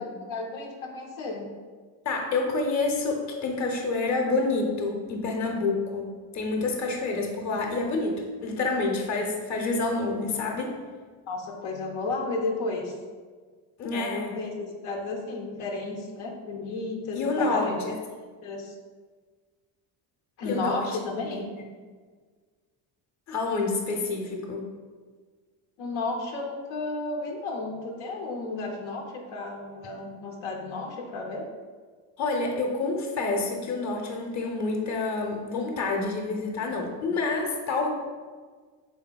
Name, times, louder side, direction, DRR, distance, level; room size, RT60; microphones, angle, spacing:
voice 1, 0.0-1.5 11.3-13.0 13.9-17.9 18.4-18.7 20.4-21.5 25.8-31.5, left 3 dB, 85° left, 0 dB, 0.7 m, -33 dB
voice 2, 2.0-10.7 13.8-14.4 17.1-18.0 20.4-20.9 21.3-21.4 23.3-24.7 32.2-37.9, left 3 dB, 35° left, 1 dB, 0.7 m, -28 dB
3.5 x 3.5 x 2.2 m, 1.5 s
supercardioid pair, 85°, 47 cm